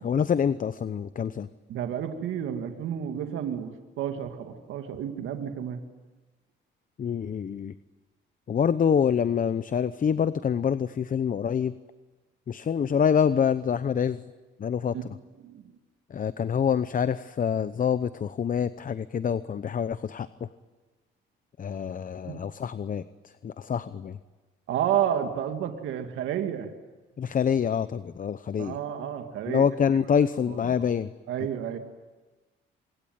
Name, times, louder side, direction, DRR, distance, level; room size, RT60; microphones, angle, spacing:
voice 1, 0.0-1.5 7.0-7.7 8.5-11.7 12.5-14.2 14.6-15.1 16.1-20.3 21.6-23.0 23.4-24.2 27.2-28.8 29.5-31.1, left 7 dB, 45° left, 14 dB, 0.8 m, -26 dB
voice 2, 1.7-5.8 14.9-15.0 15.4-15.6 22.3-22.4 24.7-26.7 28.6-29.7 30.5-30.7 31.3-31.8, right 9 dB, 85° right, 6 dB, 2.3 m, -31 dB
25.5 x 23.0 x 9.4 m, 1.2 s
cardioid pair, 90°, 20 cm